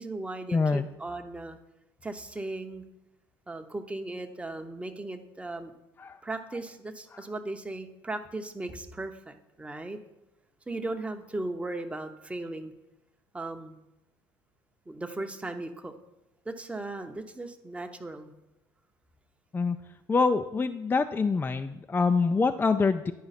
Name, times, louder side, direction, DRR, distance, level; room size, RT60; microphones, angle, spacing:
voice 1, 0.0-1.6 2.0-2.8 3.5-5.7 6.2-10.0 10.7-12.7 13.3-13.8 14.9-15.9 16.4-18.3, right 2 dB, 10° right, 6 dB, 0.8 m, -37 dB
voice 2, 0.5-0.9 6.0-6.2 19.5-19.8 20.1-23.1, left 4 dB, 20° left, 8 dB, 0.4 m, -25 dB
10.5 x 4.7 x 4.1 m, 0.96 s
hypercardioid pair, 70°, 11 cm